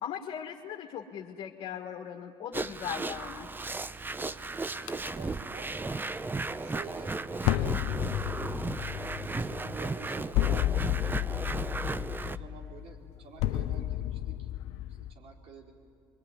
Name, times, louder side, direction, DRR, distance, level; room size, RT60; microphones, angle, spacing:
voice 1, 0.0-3.5, left 9 dB, 60° left, 1 dB, 1.8 m, -39 dB
sound 1, 2.5-12.4, right 3 dB, 20° right, 0.8 m, -35 dB
voice 2, 4.1-5.8 6.5-11.3 12.1-14.5 14.9-15.7, right 5 dB, 60° right, 0 dB, 4.8 m, -50 dB
sound 2, 4.9-5.1 7.4-15.1, left 14 dB, 75° left, 0.7 m, -32 dB
24.0 x 23.5 x 9.7 m, 2.3 s
supercardioid pair, 80°, 11 cm